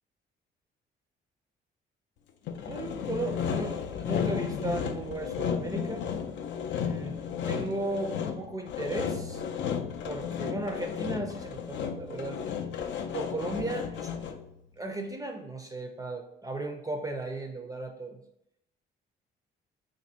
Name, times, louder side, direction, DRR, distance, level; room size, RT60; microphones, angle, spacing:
Sawing, 2.5-14.5, left 7 dB, 65° left, 0.4 m, -33 dB
voice 1, 2.7-6.0 6.8-7.2 7.5-9.4 10.0-12.4 13.1-14.0 14.8-18.2, right 2 dB, 15° right, 4 dB, 0.4 m, -36 dB
2.6 x 2.5 x 4.1 m, 0.79 s
cardioid pair, 90°, 20 cm